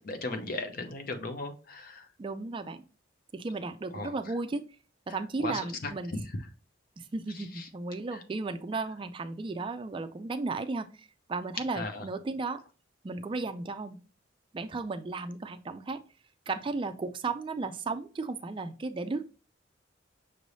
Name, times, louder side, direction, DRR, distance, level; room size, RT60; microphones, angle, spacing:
voice 1, 0.0-2.0 3.9-4.1 5.4-6.2 7.6-7.7 11.7-12.0, left 2 dB, 50° left, 7 dB, 0.7 m, -36 dB
voice 2, 2.2-2.8 3.3-4.6 5.1-6.1 7.0-12.6 13.0-14.0 14.5-16.0 16.5-19.2, right 3 dB, 25° right, 10 dB, 0.3 m, -34 dB
6.0 x 3.3 x 2.6 m, 0.34 s
head